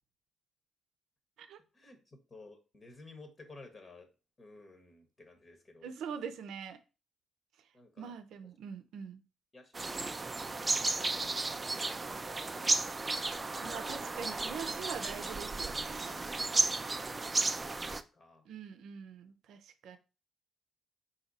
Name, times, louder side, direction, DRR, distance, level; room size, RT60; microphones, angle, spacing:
voice 1, 1.7-4.1 4.4-5.9 7.7-8.1 9.5-13.1 17.1-18.5, left 3 dB, 35° left, 1.1 m, -55 dB
voice 2, 5.8-6.8 8.0-9.2 13.6-16.2 18.5-20.0, right 7 dB, 80° right, 0.6 m, -43 dB
sound 1, 9.7-18.0, right 3 dB, 25° right, 0.3 m, -34 dB
4.1 x 2.8 x 4.0 m
cardioid pair, 90°, 0 cm